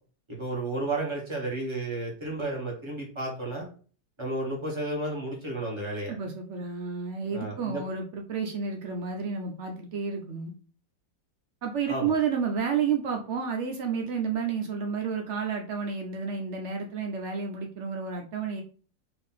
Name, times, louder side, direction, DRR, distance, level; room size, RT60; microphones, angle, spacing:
voice 1, 0.3-3.7 4.2-6.1 7.3-7.8 11.9-12.1, right 2 dB, 15° right, -4 dB, 1.3 m, -32 dB
voice 2, 6.1-10.5 11.6-18.6, right 6 dB, 90° right, 2 dB, 0.6 m, -31 dB
4.5 x 2.6 x 4.0 m, 0.40 s
omnidirectional pair, 2.0 m